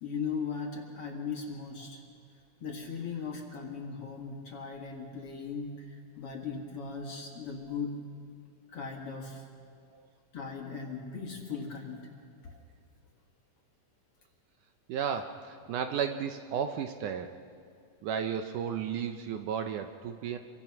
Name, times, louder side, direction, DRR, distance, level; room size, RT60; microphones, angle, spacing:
voice 1, 0.0-2.0 2.6-8.0 8.7-9.4 10.3-12.1, left 5 dB, 45° left, 1 dB, 2.4 m, -38 dB
voice 2, 14.9-17.4 18.0-20.4, right 8 dB, 75° right, 7 dB, 2.1 m, -33 dB
27.5 x 23.0 x 6.0 m, 2.2 s
omnidirectional pair, 4.1 m